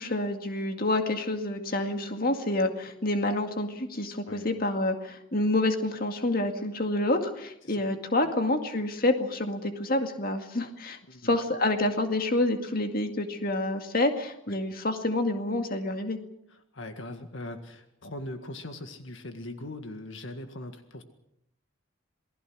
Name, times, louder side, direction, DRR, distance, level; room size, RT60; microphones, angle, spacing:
voice 1, 0.0-11.0 11.2-16.2, left 2 dB, 45° left, 5 dB, 2.1 m, -28 dB
voice 2, 16.5-21.0, left 1 dB, 65° left, 7 dB, 1.9 m, -40 dB
28.0 x 19.5 x 6.3 m, 0.75 s
head